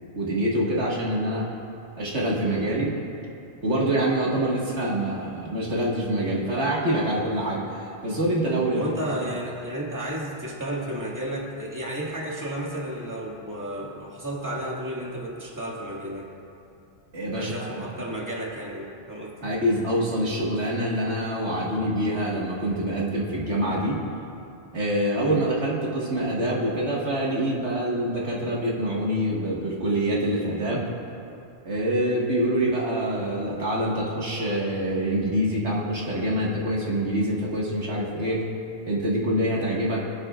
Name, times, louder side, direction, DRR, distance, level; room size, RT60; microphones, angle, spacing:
voice 1, 0.2-1.5 2.0-2.9 3.6-8.8 17.1-17.7 18.0-18.1 19.4-24.0 24.7-30.9 31.7-38.4 38.9-40.0, right 1 dB, 75° right, -5 dB, 2.1 m, -25 dB
voice 2, 8.7-16.3 17.4-19.5, right 1 dB, 15° right, -5 dB, 2.1 m, -32 dB
25.5 x 8.6 x 2.5 m, 2.7 s
omnidirectional pair, 1.2 m